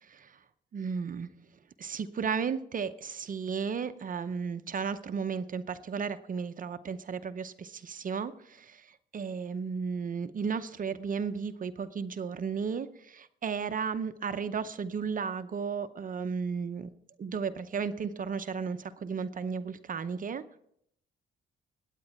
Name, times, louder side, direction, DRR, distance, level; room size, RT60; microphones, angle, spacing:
voice 1, 0.0-0.4 0.7-1.3 1.8-16.9 17.2-20.6, right 6 dB, 45° right, 10 dB, 0.7 m, -34 dB
19.0 x 9.1 x 4.3 m, 0.71 s
cardioid pair, 90°, 20 cm